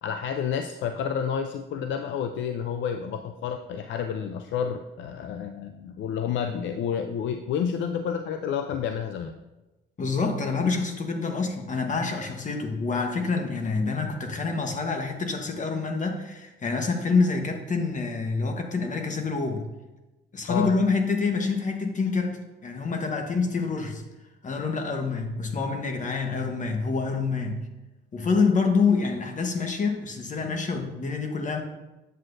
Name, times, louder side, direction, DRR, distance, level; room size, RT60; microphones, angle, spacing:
voice 1, 0.0-9.3 20.5-20.7, left 7 dB, 70° left, 7 dB, 0.5 m, -30 dB
voice 2, 10.0-19.6 20.3-24.0 24.4-27.6 28.1-31.6, left 4 dB, 40° left, 4 dB, 1.1 m, -27 dB
7.8 x 7.5 x 2.6 m, 1.0 s
cardioid pair, 90°, 20 cm